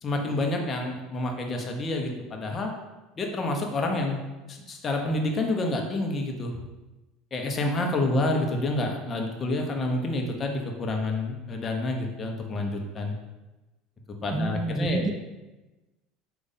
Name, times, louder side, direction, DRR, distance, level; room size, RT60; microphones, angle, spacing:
voice 1, 0.0-2.7 3.2-4.2 4.5-6.6 7.3-13.1 14.2-15.1, left 2 dB, 35° left, 2 dB, 0.9 m, -28 dB
voice 2, 14.3-15.1, right 3 dB, 20° right, 6 dB, 0.3 m, -28 dB
5.0 x 2.5 x 4.1 m, 1.1 s
hypercardioid pair, 90°, 0 cm